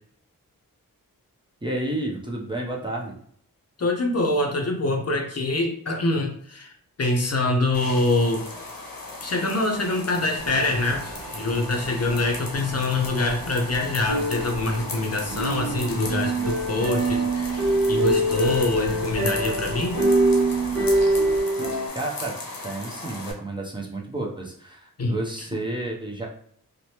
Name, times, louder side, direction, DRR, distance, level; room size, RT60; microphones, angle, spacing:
voice 1, 1.6-3.1 21.9-22.3 22.6-26.3, right 2 dB, 15° right, -3 dB, 0.5 m, -31 dB
voice 2, 3.8-6.7 7.0-8.4 9.2-20.0 25.0-25.1, left 2 dB, 45° left, 2 dB, 0.6 m, -25 dB
sound 1, 7.7-23.3, left 3 dB, 80° left, 0.7 m, -37 dB
Mechanisms, 10.4-21.4, right 2 dB, 75° right, 0.6 m, -39 dB
sound 2, 14.1-21.9, right 1 dB, 60° right, 1.0 m, -24 dB
3.1 x 2.1 x 2.8 m, 0.63 s
wide cardioid pair, 75°, 35 cm